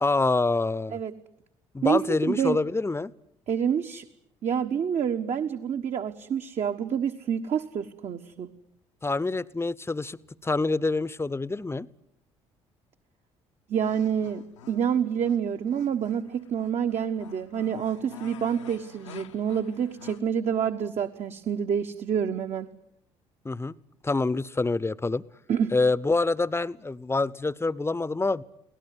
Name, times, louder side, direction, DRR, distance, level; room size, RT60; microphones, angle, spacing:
voice 1, 0.0-1.0 1.7-3.1 9.0-11.9 23.4-23.7 24.0-25.2 25.7-28.4, left 3 dB, 15° left, 22 dB, 0.9 m, -26 dB
voice 2, 1.8-2.6 3.5-4.0 4.4-8.5 13.7-22.7 25.5-25.7, right 8 dB, 45° right, 6 dB, 1.4 m, -27 dB
sound 1, 13.8-20.2, left 7 dB, 75° left, 1.2 m, -48 dB
24.0 x 18.5 x 9.6 m, 0.74 s
figure-of-eight pair, 50°, 16 cm